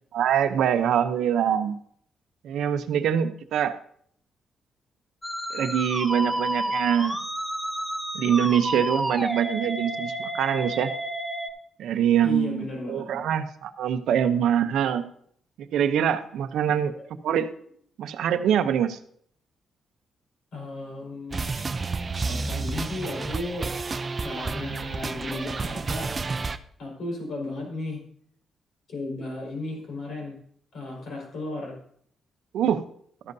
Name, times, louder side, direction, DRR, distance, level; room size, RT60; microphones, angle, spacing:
voice 1, 0.1-1.8 2.4-3.7 5.5-7.2 8.1-10.9 11.8-15.0 15.7-16.9 17.2-17.5 18.0-19.0 32.5-32.8, right 9 dB, 85° right, 10 dB, 0.7 m, -24 dB
Musical instrument, 5.2-11.5, right 1 dB, 5° left, 1.2 m, -30 dB
voice 2, 12.2-13.2 20.5-21.4 22.2-23.7 24.2-26.1 26.8-28.0 28.9-30.3 30.7-31.7, left 2 dB, 70° left, -1 dB, 4.9 m, -34 dB
sound 1, 21.3-26.6, right 4 dB, 35° right, 0.5 m, -30 dB
13.0 x 11.0 x 2.7 m, 0.64 s
cardioid pair, 90°, 0 cm